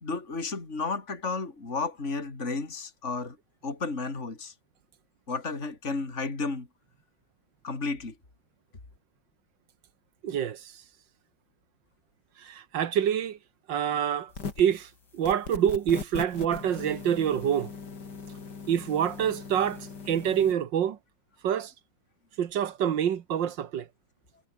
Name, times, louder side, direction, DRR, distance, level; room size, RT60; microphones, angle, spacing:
voice 1, 0.0-3.4 3.6-4.5 5.3-6.7 7.6-8.2, left 3 dB, 40° left, 3.9 m, -32 dB
voice 2, 10.2-10.6 12.4-13.4 13.7-14.3 14.6-14.9 15.1-17.7 18.7-21.0 21.4-21.7 22.4-23.9, right 9 dB, 80° right, 2.0 m, -26 dB
sound 1, 14.3-14.8 15.2-20.5, left 5 dB, 65° left, 3.4 m, -40 dB
omnidirectional pair, 2.0 m